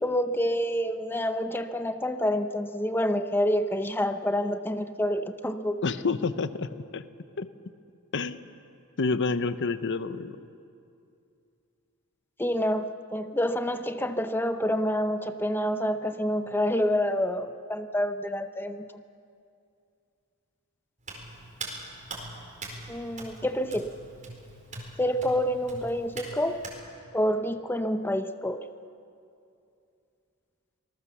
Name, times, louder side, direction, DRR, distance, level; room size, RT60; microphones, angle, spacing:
voice 1, 0.0-5.8 12.4-18.8 22.9-23.9 25.0-26.6 27.1-28.7, equal, 10° left, 9 dB, 0.7 m, -28 dB
voice 2, 5.8-7.0 7.4-7.5 8.1-8.4 9.0-10.4, left 4 dB, 55° left, 12 dB, 0.8 m, -28 dB
Hands, 21.0-26.8, right 2 dB, 35° right, 4.6 m, -42 dB
25.5 x 19.5 x 7.1 m, 2.5 s
head